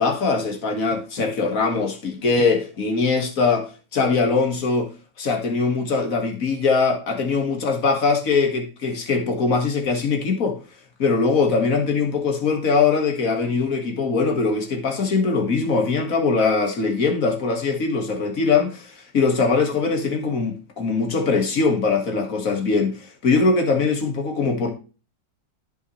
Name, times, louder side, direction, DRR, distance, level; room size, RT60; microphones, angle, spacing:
voice 1, 0.0-4.9 5.2-10.6 11.0-23.0 23.2-24.7, left 4 dB, 50° left, 2.1 m, -21 dB
14.0 x 5.7 x 3.1 m
omnidirectional pair, 2.0 m